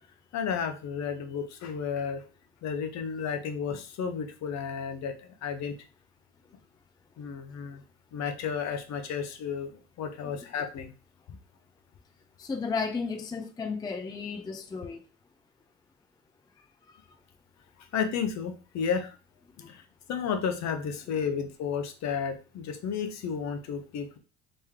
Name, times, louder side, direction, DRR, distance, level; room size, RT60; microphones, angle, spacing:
voice 1, 0.3-2.2 2.6-5.7 7.2-7.8 8.1-9.7 10.0-10.9 11.3-11.4 17.9-19.2 19.6-19.8 20.1-24.2, left 6 dB, 50° left, 0.8 m, -32 dB
voice 2, 12.4-15.0, left 5 dB, 10° left, 0.4 m, -33 dB
3.1 x 3.0 x 3.6 m
supercardioid pair, 90°, 34 cm